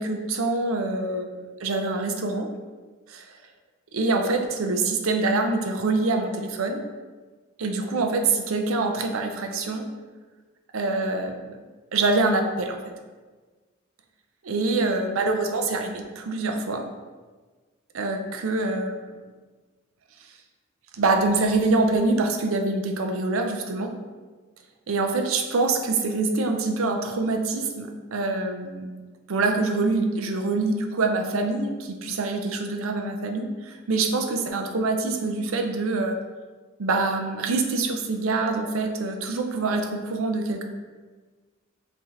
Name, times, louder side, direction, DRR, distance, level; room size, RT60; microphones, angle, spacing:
voice 1, 0.0-2.5 3.1-3.4 3.9-6.8 7.6-9.9 10.7-11.5 11.9-12.8 14.4-16.9 17.9-19.0 20.9-23.9 24.9-28.8 29.3-36.2 36.8-40.6, right 3 dB, 85° right, 4 dB, 0.5 m, -25 dB
5.7 x 2.8 x 3.2 m, 1.4 s
head